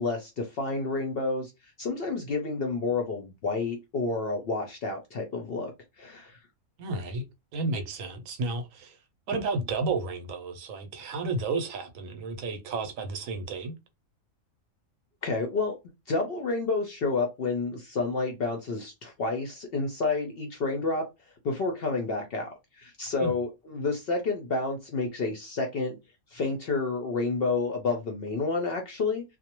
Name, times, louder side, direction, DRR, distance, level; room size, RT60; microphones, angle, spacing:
voice 1, 0.0-1.5 1.8-5.7 6.0-6.4 15.2-15.8 16.1-21.1 21.4-26.0 26.3-29.2, left 3 dB, 65° left, 0.6 m, -29 dB
voice 2, 6.8-7.2 7.5-9.0 9.3-13.7 23.2-23.3, right 3 dB, 75° right, 1.0 m, -32 dB
2.3 x 2.1 x 2.9 m
omnidirectional pair, 1.4 m